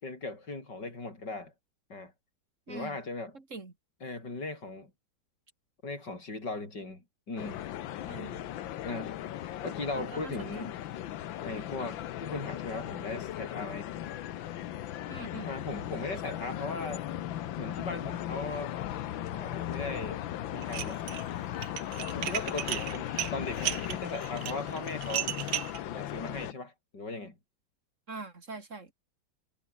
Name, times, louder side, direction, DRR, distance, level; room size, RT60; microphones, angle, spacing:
voice 1, 0.0-1.5 1.9-2.1 2.7-3.4 4.0-4.9 5.8-7.6 8.8-9.2 9.6-10.8 11.4-13.9 15.5-17.1 17.6-18.7 19.3-20.2 20.5-21.0 22.1-25.3 25.8-27.3, left 3 dB, 60° left, 7.4 m, -38 dB
voice 2, 2.7-3.0 3.5-3.7 8.1-8.5 10.0-10.6 15.1-15.5 28.1-28.9, right 3 dB, 40° right, 3.1 m, -43 dB
sound 1, 7.4-26.5, left 12 dB, 75° left, 1.6 m, -37 dB
Dishes pots and pans, 20.6-21.2 21.5-25.8, right 12 dB, 65° right, 1.4 m, -34 dB
omnidirectional pair, 2.2 m